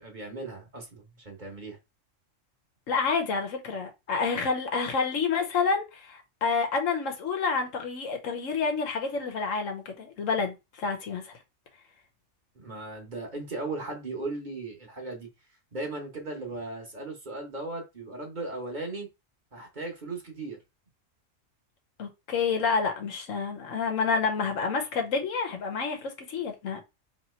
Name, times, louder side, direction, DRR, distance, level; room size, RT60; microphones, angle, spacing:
voice 1, 0.0-1.8 12.5-15.3 15.7-19.1 19.5-20.6, right 2 dB, 40° right, 1.1 m, -37 dB
voice 2, 2.9-11.3 22.0-26.8, left 5 dB, 75° left, 1.2 m, -29 dB
3.1 x 2.8 x 4.3 m
omnidirectional pair, 1.3 m